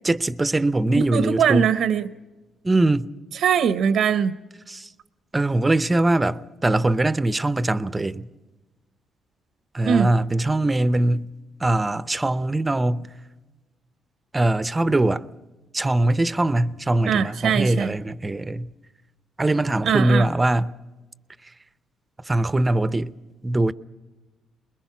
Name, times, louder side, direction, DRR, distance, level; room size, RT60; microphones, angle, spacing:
voice 1, 0.0-1.7 2.6-3.1 4.7-4.9 5.3-8.3 9.7-11.3 11.6-13.1 14.3-15.2 15.7-18.7 19.4-20.7 22.3-23.1 23.4-23.7, right 2 dB, 20° right, 0.7 m, -22 dB
voice 2, 1.0-2.1 3.3-4.4 9.9-10.1 17.1-17.9 19.8-20.3, right 7 dB, 75° right, 0.8 m, -21 dB
24.0 x 21.5 x 5.9 m
cardioid pair, 90°, 0 cm